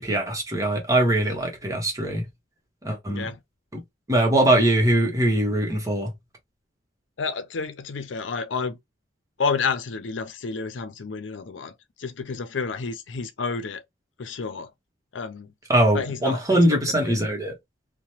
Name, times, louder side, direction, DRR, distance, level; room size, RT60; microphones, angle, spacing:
voice 1, 0.0-2.2 2.8-3.3 3.7-3.8 4.1-6.1 15.7-17.5, right 1 dB, 20° right, 1.0 m, -22 dB
voice 2, 3.1-3.4 7.2-8.8 9.4-11.7 12.0-13.8 14.2-14.7 15.1-15.5 15.9-17.2, left 5 dB, 85° left, 0.6 m, -30 dB
2.9 x 2.2 x 2.9 m
head